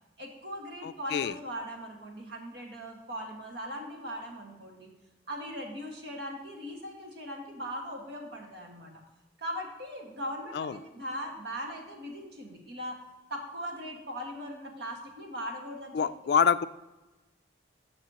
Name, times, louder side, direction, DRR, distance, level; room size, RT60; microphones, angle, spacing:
voice 1, 0.2-4.9 5.3-8.9 9.4-13.0 13.3-16.0, equal, 65° right, 1 dB, 1.7 m, -39 dB
voice 2, 0.8-1.3 10.5-10.8 15.9-16.7, left 7 dB, 60° left, 14 dB, 0.3 m, -26 dB
13.0 x 6.5 x 2.9 m, 1.1 s
head